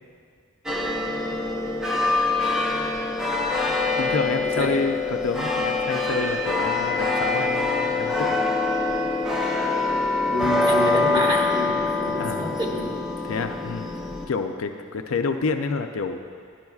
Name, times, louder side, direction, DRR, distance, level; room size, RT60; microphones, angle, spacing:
sound 1, 0.7-14.3, left 3 dB, 5° right, 0.6 m, -24 dB
voice 1, 4.0-8.4 12.1-12.6 13.2-13.9 14.3-16.2, left 4 dB, 70° left, 6 dB, 0.5 m, -28 dB
voice 2, 10.3-12.9, equal, 25° right, -3 dB, 1.1 m, -27 dB
12.0 x 10.5 x 2.4 m, 2.2 s
head